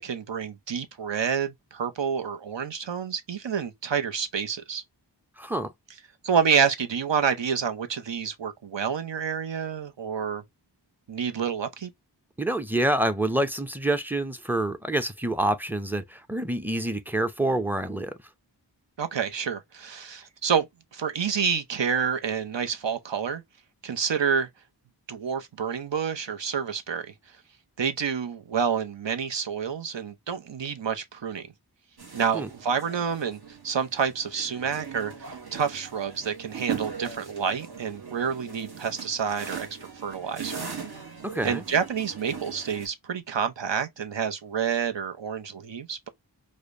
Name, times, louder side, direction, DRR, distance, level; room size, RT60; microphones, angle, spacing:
voice 1, 0.0-4.8 6.2-10.4 11.1-11.9 19.0-20.7 20.9-23.4 23.8-24.5 25.1-27.1 27.8-31.5 32.1-39.7 40.0-40.6 41.4-46.1, right 7 dB, 85° right, 0.7 m, -28 dB
voice 2, 5.4-5.7 12.4-18.2 32.3-32.5 41.2-41.6, right 1 dB, 5° right, 0.5 m, -27 dB
sound 1, 32.0-42.9, right 6 dB, 60° right, 1.1 m, -40 dB
4.9 x 2.1 x 2.4 m
wide cardioid pair, 50°, 42 cm